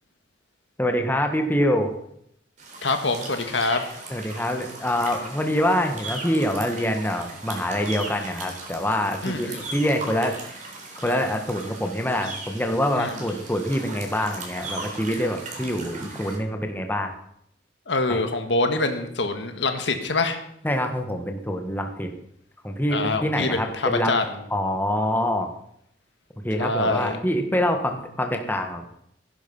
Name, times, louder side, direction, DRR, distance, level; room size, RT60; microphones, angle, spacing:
voice 1, 0.8-1.9 4.1-10.3 11.0-17.1 18.1-18.2 20.6-22.1 22.6-25.5 26.4-29.0, equal, 10° left, 5 dB, 1.6 m, -25 dB
sound 1, 2.6-16.3, right 2 dB, 45° right, 4.0 m, -38 dB
voice 2, 2.8-3.8 9.2-9.7 12.9-13.2 17.9-20.4 22.9-24.2 26.6-27.2, left 3 dB, 75° left, 7 dB, 1.7 m, -25 dB
16.0 x 11.0 x 5.6 m, 0.72 s
head